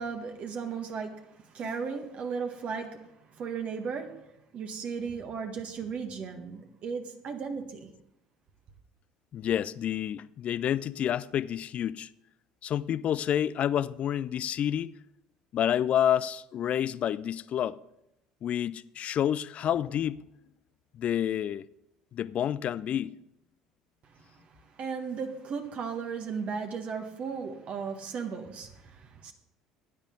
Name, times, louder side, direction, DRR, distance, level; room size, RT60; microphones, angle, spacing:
voice 1, 0.0-4.2 4.5-7.9 24.1-29.3, right 5 dB, 45° right, 1.6 m, -36 dB
voice 2, 9.3-12.1 12.6-14.9 15.5-17.8 18.4-20.3 20.9-21.6 22.1-23.1, left 10 dB, 45° left, 0.4 m, -29 dB
15.5 x 10.5 x 3.8 m
figure-of-eight pair, 60°, 3 cm